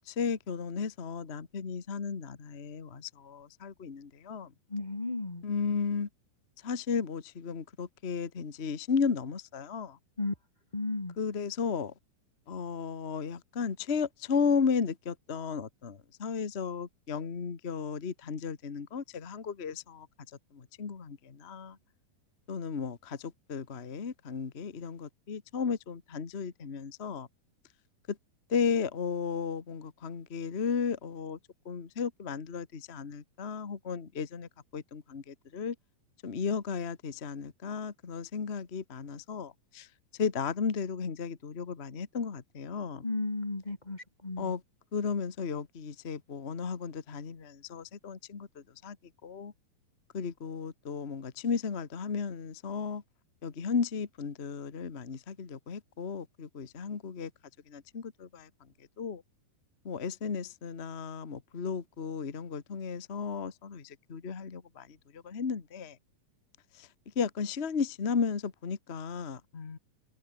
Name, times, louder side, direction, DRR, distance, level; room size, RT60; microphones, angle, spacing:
voice 1, 0.1-4.5 5.4-6.1 6.6-10.0 11.2-11.9 12.5-20.1 20.5-21.8 22.5-27.3 28.1-28.2 28.5-31.4 31.6-35.7 36.2-39.9 40.2-43.0 44.4-44.6 44.9-49.0 49.2-49.5 50.1-53.0 53.4-57.3 57.7-58.5 59.0-59.2 59.8-66.0 66.8-66.9 67.1-69.8, left 5 dB, 80° left, 0.5 m, -34 dB
voice 2, 4.7-5.4 10.2-10.3 10.7-11.1 43.0-44.5, left 2 dB, 20° left, 1.3 m, -34 dB
omnidirectional pair, 4.1 m